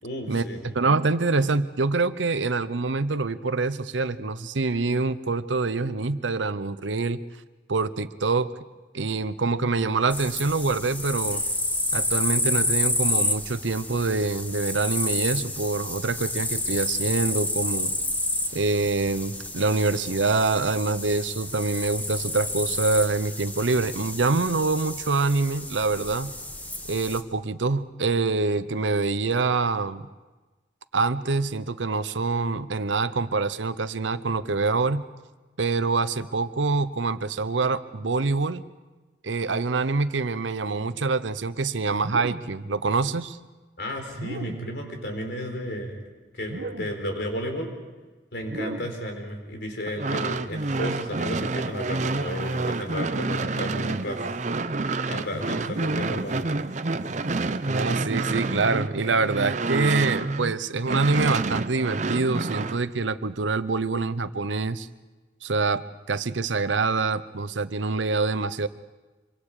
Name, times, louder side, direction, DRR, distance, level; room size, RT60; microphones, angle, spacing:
voice 1, 0.0-0.8 43.8-46.0 46.3-47.7 48.3-54.2 55.1-56.5, equal, 65° left, 3 dB, 4.2 m, -33 dB
voice 2, 0.7-7.2 7.7-8.5 8.9-11.4 11.9-17.9 18.5-26.3 26.9-30.1 30.9-35.0 35.6-38.6 39.2-43.4 56.9-57.0 57.7-64.9 65.4-68.7, right 3 dB, 85° right, 13 dB, 0.8 m, -25 dB
sound 1, 10.1-27.2, left 1 dB, 10° left, 1.1 m, -30 dB
sound 2, 41.9-42.6 44.1-44.8 46.4-47.1 48.4-49.1 50.7-51.0 52.5-52.9 54.1-54.5 55.6-56.2, right 2 dB, 70° right, 1.3 m, -38 dB
sound 3, 49.9-60.5 60.8-62.8, right 3 dB, 40° right, 0.7 m, -28 dB
26.0 x 24.0 x 5.0 m, 1.2 s
head